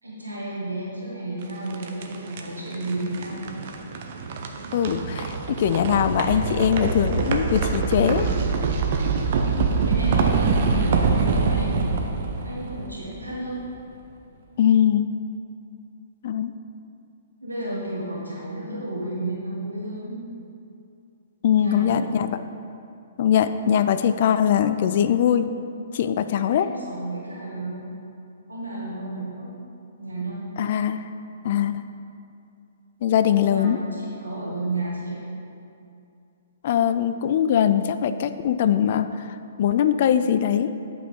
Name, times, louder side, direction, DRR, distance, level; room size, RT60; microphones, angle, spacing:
voice 1, 0.0-3.4 9.8-13.6 17.4-20.2 21.5-22.1 26.5-27.8 28.5-29.5 30.0-30.5 33.5-35.2, right 1 dB, 90° right, -7 dB, 1.6 m, -32 dB
sound 1, 1.4-13.5, right 4 dB, 50° right, 0.7 m, -25 dB
voice 2, 4.7-8.3 14.6-15.1 16.2-16.5 21.4-22.4 23.2-25.5 25.9-26.7 30.6-31.1 31.4-31.8 33.0-33.8 36.6-40.7, left 9 dB, 50° left, 11 dB, 0.3 m, -21 dB
9.7 x 5.5 x 3.7 m, 2.5 s
figure-of-eight pair, 120°, 0 cm